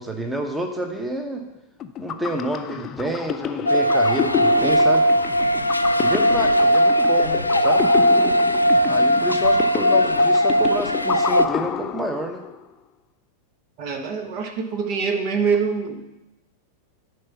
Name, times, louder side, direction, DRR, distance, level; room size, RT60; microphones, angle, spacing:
voice 1, 0.0-1.4 2.0-5.1 6.0-7.9 8.9-12.4, right 1 dB, 10° right, 4 dB, 1.1 m, -29 dB
sound 1, 1.8-12.6, left 8 dB, 30° left, 0.5 m, -29 dB
sound 2, 3.7-11.5, equal, 85° left, 0.4 m, -18 dB
voice 2, 13.8-16.1, right 5 dB, 45° right, 5 dB, 1.1 m, -24 dB
11.0 x 4.6 x 7.1 m, 0.96 s
figure-of-eight pair, 90°, 0 cm